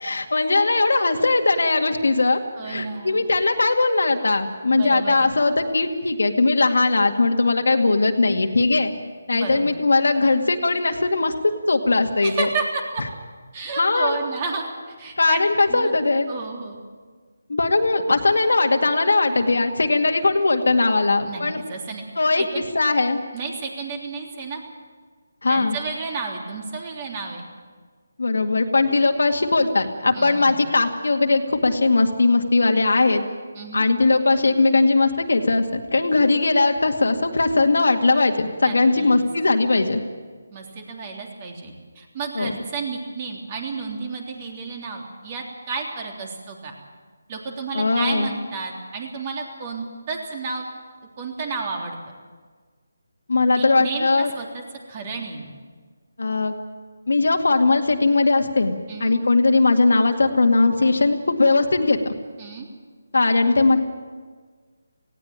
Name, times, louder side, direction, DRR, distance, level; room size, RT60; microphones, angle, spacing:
voice 1, 0.0-2.4 2.7-8.9 9.3-11.3 11.7-12.5 13.8-14.2 15.2-16.3 17.5-21.6 22.2-22.4 22.7-23.2 25.4-25.8 28.2-33.2 33.7-40.0 42.4-42.5 47.7-48.3 53.3-54.3 56.2-56.5 57.1-58.7 59.0-62.1 63.1-63.8, left 3 dB, 80° left, 5 dB, 2.1 m, -19 dB
voice 2, 2.6-3.3 4.7-5.3 9.3-9.7 12.2-13.0 13.5-15.4 15.7-15.9 16.3-16.8 21.2-22.0 22.4-22.6 23.3-24.6 25.5-27.4 30.1-30.7 33.5-33.8 38.6-39.2 40.5-46.7 47.3-50.6 51.2-52.0 53.5-54.6 54.9-55.6 58.9-59.2 62.4-62.7, right 4 dB, 30° right, 2 dB, 3.3 m, -32 dB
19.0 x 16.5 x 8.9 m, 1.5 s
figure-of-eight pair, 160°, 0 cm